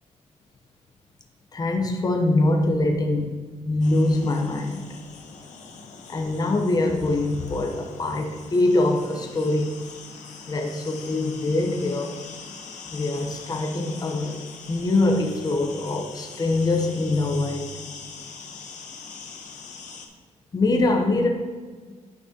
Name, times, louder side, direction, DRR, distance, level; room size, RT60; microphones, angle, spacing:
voice 1, 1.5-3.4 3.6-4.9 6.1-9.7 10.5-12.2 12.9-14.4 14.7-17.7 20.5-21.3, left 2 dB, 30° left, 2 dB, 0.8 m, -23 dB
sound 1, 3.8-20.1, left 5 dB, 75° left, 1.0 m, -42 dB
10.0 x 6.0 x 2.9 m, 1.5 s
cardioid pair, 120°, 13 cm